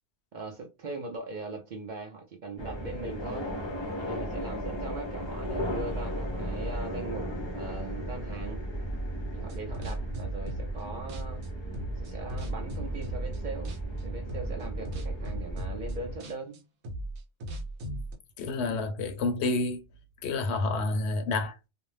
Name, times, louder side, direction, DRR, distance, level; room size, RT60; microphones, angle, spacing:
voice 1, 0.3-3.5 4.0-7.3 7.5-8.6 9.3-11.4 12.0-13.7 14.0-16.6 18.6-18.8, right 3 dB, 55° right, 0.5 m, -40 dB
sound 1, 2.6-16.2, right 1 dB, 35° left, 0.5 m, -35 dB
sound 2, 9.4-10.8 11.1-13.4 13.6-14.0 14.3-18.1, right 1 dB, 70° right, 0.9 m, -37 dB
voice 2, 18.4-19.8 20.2-21.7, left 3 dB, 70° left, 0.8 m, -29 dB
2.5 x 2.0 x 3.1 m
omnidirectional pair, 1.2 m